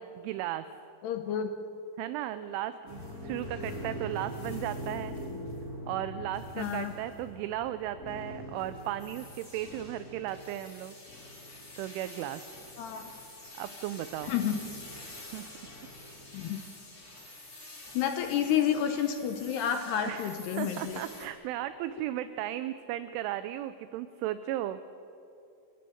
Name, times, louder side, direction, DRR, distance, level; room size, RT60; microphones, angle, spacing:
voice 1, 0.2-0.7 2.0-5.1 5.9-11.0 11.8-12.4 13.6-14.3 15.3-15.5 20.1-24.8, right 13 dB, 80° right, 11 dB, 2.9 m, -35 dB
voice 2, 1.0-1.5 6.6-6.9 12.8-13.1 14.3-14.6 16.3-16.6 17.9-21.0, left 9 dB, 75° left, 6 dB, 2.6 m, -30 dB
sound 1, 2.9-21.3, left 1 dB, 20° left, 3.3 m, -44 dB
29.5 x 14.5 x 7.9 m, 2.7 s
omnidirectional pair, 5.9 m